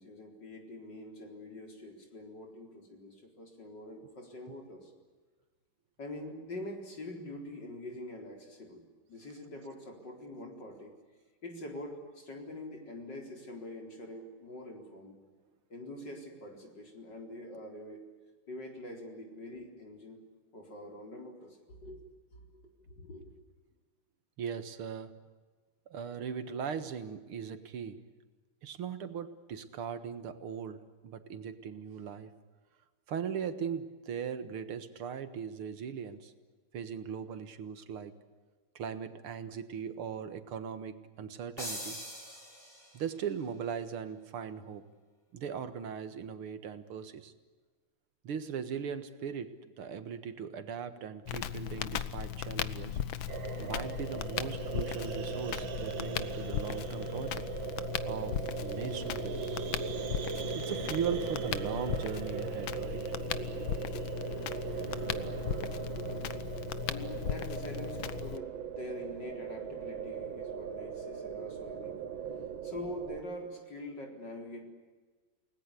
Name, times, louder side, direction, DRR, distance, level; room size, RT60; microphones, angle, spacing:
voice 1, 0.0-4.9 6.0-8.8 9.1-10.9 11.4-15.1 15.7-18.0 18.5-20.2 20.5-22.0 22.3-23.3 66.9-72.0 72.6-74.7, left 1 dB, 55° left, 2 dB, 4.8 m, -45 dB
voice 2, 24.4-25.2 25.9-28.0 28.6-32.3 33.1-36.3 36.7-38.2 38.8-42.0 42.9-44.9 45.3-47.3 48.2-53.0 53.6-57.4 58.1-59.6 60.5-63.0, right 7 dB, 90° right, 10 dB, 2.4 m, -39 dB
sound 1, 41.6-43.2, equal, 25° left, 6.3 m, -42 dB
Crackle, 51.3-68.4, left 10 dB, 70° left, 1.7 m, -37 dB
sound 2, 53.3-73.2, right 8 dB, 65° right, 2.0 m, -39 dB
29.0 x 19.5 x 8.3 m, 1.3 s
omnidirectional pair, 2.3 m